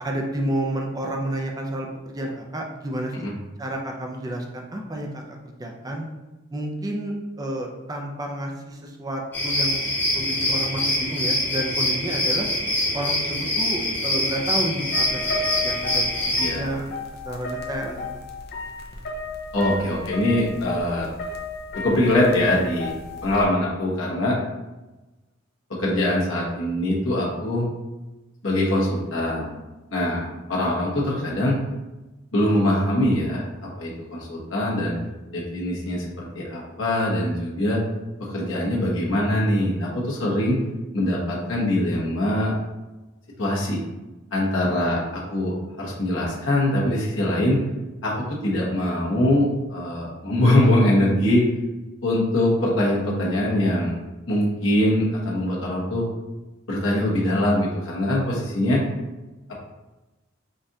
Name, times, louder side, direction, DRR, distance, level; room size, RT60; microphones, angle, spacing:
voice 1, 0.0-3.2 3.6-6.1 6.5-12.5 12.9-16.9 17.2-18.0, right 1 dB, 20° right, 1 dB, 0.5 m, -30 dB
sound 1, 9.3-16.5, left 1 dB, 10° left, 0.7 m, -24 dB
sound 2, 14.9-23.5, left 3 dB, 55° left, 0.5 m, -33 dB
voice 2, 19.5-21.1 21.7-22.9 23.2-24.4 25.8-27.7 28.4-29.5 29.9-31.6 32.3-33.5 33.8-35.0 35.3-37.8 38.3-40.6 40.9-42.5 43.4-43.8 44.3-47.6 48.0-51.4 52.0-54.0 54.3-56.0 56.7-58.8, left 1 dB, 75° left, -4 dB, 1.2 m, -23 dB
5.2 x 2.4 x 2.7 m, 1.1 s
head